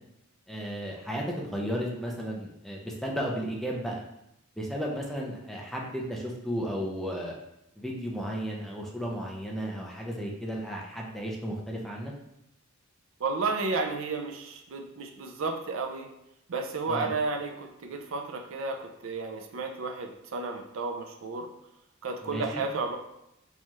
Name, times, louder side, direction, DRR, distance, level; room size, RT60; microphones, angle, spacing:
voice 1, 0.5-4.0 4.6-7.3 7.8-12.1 16.9-17.1 22.2-22.6, equal, ahead, -2 dB, 0.4 m, -34 dB
voice 2, 13.2-16.1 16.5-21.5 22.0-23.0, right 3 dB, 70° right, 4 dB, 0.5 m, -32 dB
4.2 x 2.3 x 3.0 m, 0.83 s
head